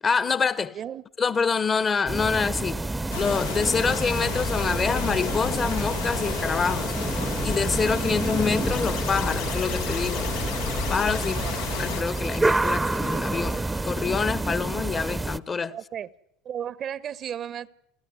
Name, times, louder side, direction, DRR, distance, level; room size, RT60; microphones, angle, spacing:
voice 1, 0.0-0.8 1.2-2.8 3.1-6.9 7.4-10.3 10.7-11.4 11.8-15.7, left 5 dB, 30° left, 1.1 m, -26 dB
sound 1, 2.1-15.4, right 2 dB, 10° right, 0.8 m, -28 dB
sound 2, 3.1-12.0, left 7 dB, 85° left, 1.8 m, -33 dB
sound 3, 8.7-14.1, left 11 dB, 70° left, 7.0 m, -41 dB
voice 2, 11.2-11.5 15.7-16.1 16.4-17.7, right 9 dB, 45° right, 0.9 m, -34 dB
29.5 x 14.0 x 9.5 m
hypercardioid pair, 85°, 0 cm